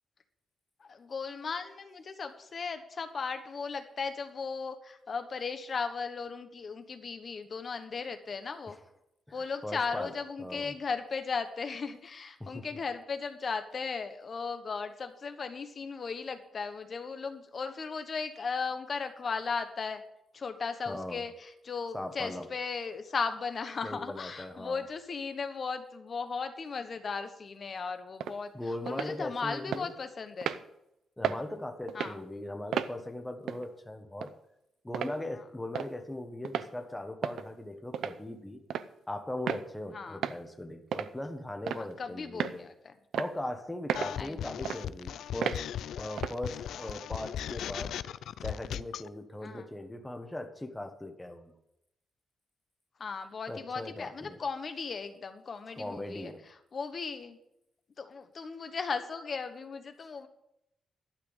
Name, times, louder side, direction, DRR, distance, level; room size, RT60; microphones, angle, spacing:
voice 1, 0.8-8.8 9.3-20.0 20.3-30.6 31.9-32.2 39.9-40.2 41.7-42.9 44.2-44.6 49.4-49.7 53.0-56.3 56.7-57.4 58.0-60.3, left 5 dB, 35° left, 8 dB, 1.2 m, -36 dB
voice 2, 9.3-10.1 10.4-10.7 12.4-12.6 20.8-21.2 21.9-22.5 23.8-24.8 28.5-29.9 31.2-34.3 34.8-38.6 39.1-42.6 43.1-45.7 46.0-47.9 48.4-51.6 53.5-54.4 55.7-56.4, left 1 dB, 5° left, 5 dB, 1.3 m, -39 dB
sound 1, 28.2-28.4 28.9-29.1 29.7-29.8 30.4-30.6 31.2-31.4 31.9-32.2 32.7-32.9 33.5-33.6 34.2-34.3 34.9-35.1 35.7-35.9 36.4-36.7 37.2-37.5 37.9-38.2 38.7-38.9 39.5-39.6 40.2-40.4 40.9-41.1 41.7-41.9 42.4-42.6 43.1-43.3 43.9-44.1 44.6-44.8 45.4-45.6 46.2-46.4, right 9 dB, 75° right, 0.6 m, -33 dB
sound 2, 43.9-49.1, left 10 dB, 80° left, 0.4 m, -37 dB
12.0 x 6.1 x 8.8 m, 0.82 s
wide cardioid pair, 160°, 0 cm